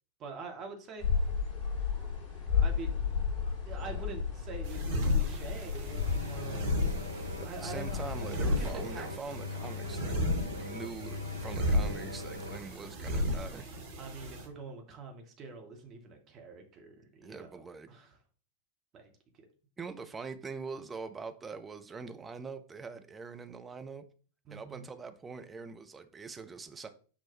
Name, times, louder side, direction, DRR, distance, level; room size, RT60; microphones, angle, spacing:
voice 1, 0.2-1.1 2.5-3.0 3.7-6.6 7.4-9.1 14.0-18.1 18.9-19.5 24.5-24.8, right 4 dB, 30° right, 0.8 m, -45 dB
sound 1, 1.0-9.0, left 6 dB, 35° left, 1.5 m, -33 dB
sound 2, 4.6-14.5, left 1 dB, 55° right, 1.0 m, -34 dB
sound 3, 5.8-12.6, left 3 dB, 85° left, 0.7 m, -40 dB
voice 2, 7.4-10.2 10.6-13.7 17.2-17.9 19.8-24.0 24.5-26.9, right 4 dB, 15° right, 0.4 m, -43 dB
6.0 x 2.1 x 3.0 m
figure-of-eight pair, 90°, 0 cm